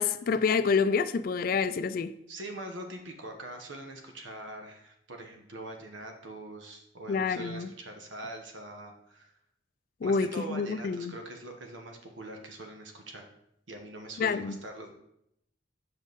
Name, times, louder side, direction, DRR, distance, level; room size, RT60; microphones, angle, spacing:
voice 1, 0.0-2.1 7.1-7.7 10.0-11.2 14.2-14.6, left 5 dB, 50° left, 0.3 m, -28 dB
voice 2, 2.3-9.3 10.0-13.2 13.7-14.9, right 2 dB, 90° right, 1.1 m, -43 dB
6.2 x 5.4 x 4.0 m
head